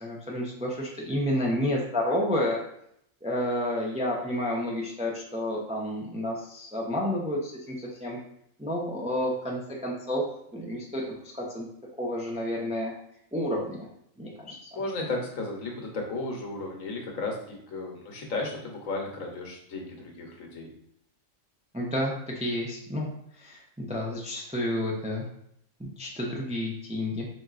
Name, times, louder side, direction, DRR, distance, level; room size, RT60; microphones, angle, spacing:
voice 1, 0.0-2.6 3.2-8.2 8.6-10.2 10.5-11.7 12.0-12.9 13.3-13.9 14.2-14.8 21.7-23.1 23.4-25.3 25.8-27.2, left 1 dB, 10° right, -2 dB, 0.4 m, -30 dB
voice 2, 14.7-20.7, left 2 dB, 80° left, 1 dB, 1.3 m, -34 dB
4.4 x 3.8 x 2.4 m, 0.73 s
omnidirectional pair, 1.4 m